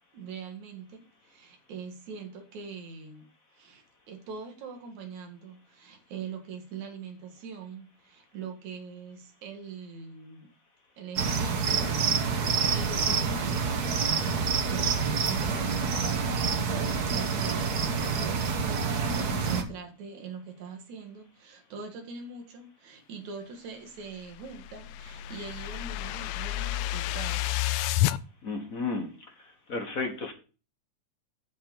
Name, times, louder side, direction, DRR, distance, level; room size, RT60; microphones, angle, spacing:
voice 1, 0.1-10.5 11.0-27.7, right 5 dB, 75° right, 3 dB, 3.2 m, -43 dB
sound 1, 11.1-19.6, right 5 dB, 55° right, 1.1 m, -27 dB
sound 2, 24.1-28.2, left 15 dB, 80° left, 1.9 m, -30 dB
voice 2, 28.4-29.1 29.7-30.3, left 3 dB, 45° left, 4 dB, 1.2 m, -32 dB
10.5 x 7.5 x 3.7 m, 0.35 s
omnidirectional pair, 3.3 m